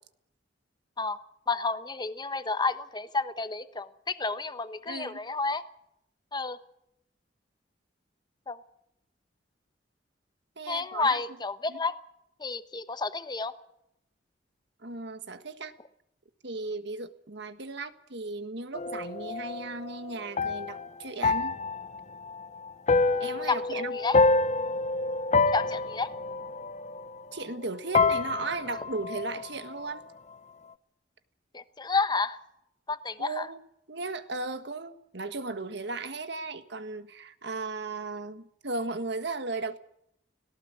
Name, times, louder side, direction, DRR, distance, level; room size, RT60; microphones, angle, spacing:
voice 1, 1.5-5.6 6.3-6.6 8.5-8.6 10.7-12.0 12.4-13.5 23.5-23.6 23.9-24.2 25.5-26.1 31.5-32.4 32.9-33.5, left 4 dB, 25° left, 12 dB, 1.1 m, -30 dB
voice 2, 4.9-5.2 10.5-11.2 11.7-11.8 14.8-15.7 16.4-21.6 23.2-24.0 27.3-30.0 33.2-33.6 33.9-39.8, right 3 dB, 65° right, 10 dB, 1.6 m, -36 dB
sound 1, 18.7-27.7 27.9-30.0, left 3 dB, 40° left, 0.8 m, -27 dB
18.0 x 17.5 x 8.4 m, 0.76 s
head